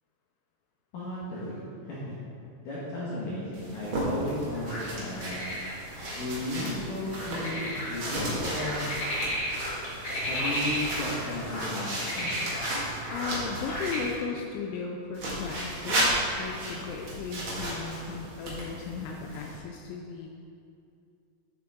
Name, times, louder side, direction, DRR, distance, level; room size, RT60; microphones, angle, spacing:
voice 1, 0.9-1.6 1.9-2.1 2.6-5.4 6.1-8.8 10.3-12.4, left 1 dB, 65° left, -8 dB, 2.3 m, -34 dB
sound 1, 3.5-14.1 15.1-19.6, right 1 dB, 80° right, 1.1 m, -34 dB
sound 2, 4.5-4.8 5.2-11.7 12.0-14.0, equal, 40° left, 1.9 m, -34 dB
voice 2, 13.1-20.3, left 5 dB, 80° left, 1 dB, 2.8 m, -36 dB
12.0 x 7.6 x 3.6 m, 2.5 s
omnidirectional pair, 5.7 m